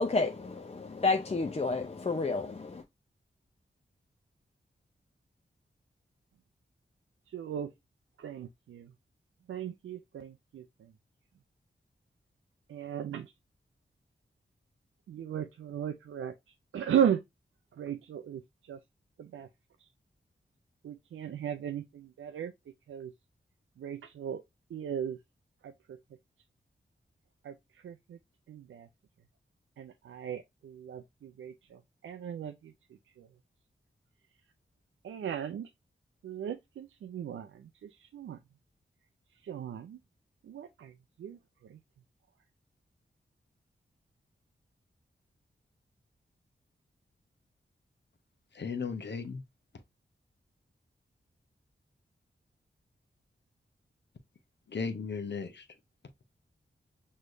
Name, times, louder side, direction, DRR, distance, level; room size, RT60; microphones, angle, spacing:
voice 1, 0.0-2.8, left 3 dB, 30° left, 0.6 m, -30 dB
voice 2, 7.3-7.7 8.2-8.9 9.5-10.9 12.7-13.3 15.1-16.3 16.7-17.2 17.8-18.8 19.2-19.5 20.8-22.5 22.9-23.1 23.8-24.4 24.7-25.2 25.6-26.0 27.4-28.2 28.5-28.9 29.8-32.7 33.2-33.3 35.0-35.7 36.2-38.4 39.4-40.0 40.4-40.9 41.2-41.8, right 9 dB, 85° right, 0.4 m, -36 dB
voice 3, 48.5-49.4 54.7-55.7, left 5 dB, 60° left, 0.9 m, -36 dB
6.2 x 3.1 x 2.6 m
cardioid pair, 40°, 20 cm